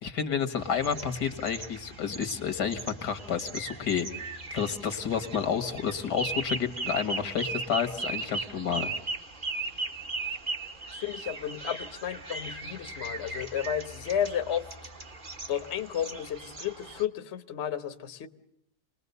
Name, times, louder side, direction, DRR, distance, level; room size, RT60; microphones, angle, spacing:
voice 1, 0.0-8.9, left 7 dB, 80° left, 9 dB, 2.2 m, -30 dB
sound 1, 0.6-17.0, right 3 dB, 30° right, 1.6 m, -38 dB
voice 2, 11.0-14.7 15.5-18.3, left 9 dB, 45° left, 9 dB, 1.2 m, -32 dB
28.5 x 20.0 x 6.8 m, 0.76 s
omnidirectional pair, 1.8 m